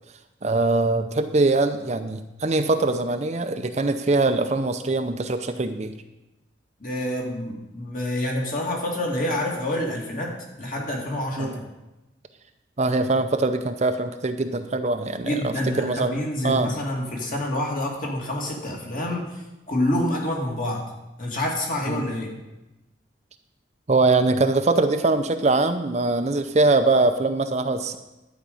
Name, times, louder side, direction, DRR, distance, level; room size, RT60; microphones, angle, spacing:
voice 1, 0.4-5.9 11.4-11.6 12.8-16.2 16.4-16.7 21.9-22.0 23.9-28.0, right 3 dB, 35° right, 8 dB, 0.6 m, -22 dB
voice 2, 6.8-11.6 15.2-20.8 21.2-22.3, left 1 dB, 45° left, -1 dB, 2.4 m, -27 dB
11.5 x 5.2 x 8.5 m, 0.99 s
head